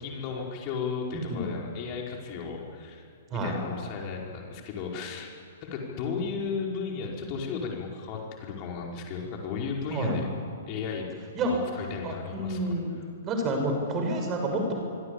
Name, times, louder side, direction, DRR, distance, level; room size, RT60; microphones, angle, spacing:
voice 1, 0.0-3.1 3.3-5.3 5.6-10.3 10.7-11.0 11.5-13.1, left 5 dB, 35° left, -1 dB, 5.1 m, -34 dB
voice 2, 1.1-1.5 3.3-3.5 9.9-10.2 11.3-11.6 12.0-12.9 13.2-14.7, right 1 dB, 25° right, 3 dB, 6.7 m, -29 dB
25.0 x 25.0 x 8.7 m, 2.4 s
figure-of-eight pair, 120°, 0 cm